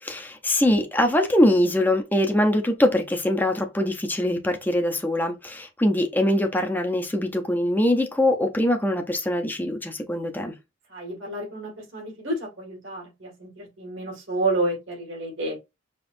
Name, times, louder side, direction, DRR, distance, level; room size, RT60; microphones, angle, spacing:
voice 1, 0.0-10.5, left 1 dB, 10° left, 0.6 m, -23 dB
voice 2, 10.9-15.6, right 2 dB, 75° right, 2.1 m, -30 dB
5.1 x 3.0 x 2.6 m
head